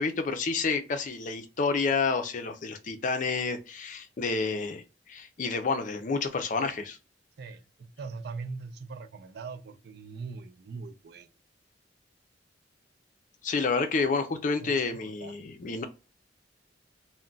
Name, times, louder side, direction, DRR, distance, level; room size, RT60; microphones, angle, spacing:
voice 1, 0.0-7.0 13.4-15.9, left 4 dB, 45° left, 0.4 m, -29 dB
voice 2, 7.4-11.3 14.6-15.3, right 4 dB, 60° right, 0.4 m, -41 dB
2.3 x 2.1 x 3.8 m
head